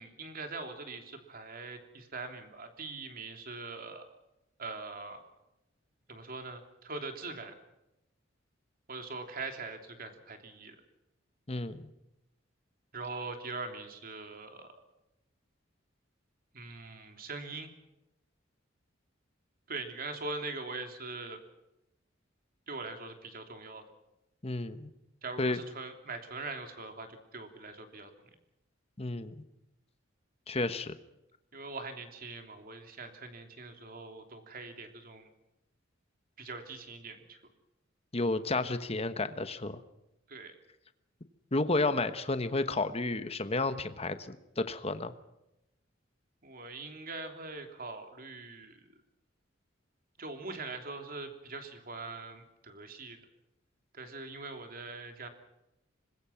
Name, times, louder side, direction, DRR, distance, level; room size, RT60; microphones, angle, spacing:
voice 1, 0.0-4.0 4.6-5.2 6.1-7.5 8.9-10.8 12.9-14.7 16.5-17.7 19.7-21.4 22.7-23.8 25.2-28.3 31.5-35.3 36.4-37.4 40.3-40.5 46.4-48.9 50.2-53.2 53.9-55.3, right 3 dB, 50° right, 5 dB, 3.2 m, -42 dB
voice 2, 11.5-11.9 24.4-24.9 25.4-25.6 29.0-29.4 30.5-30.9 38.1-39.8 41.5-45.1, left 2 dB, 30° left, 11 dB, 1.2 m, -31 dB
25.5 x 21.0 x 5.9 m, 0.91 s
head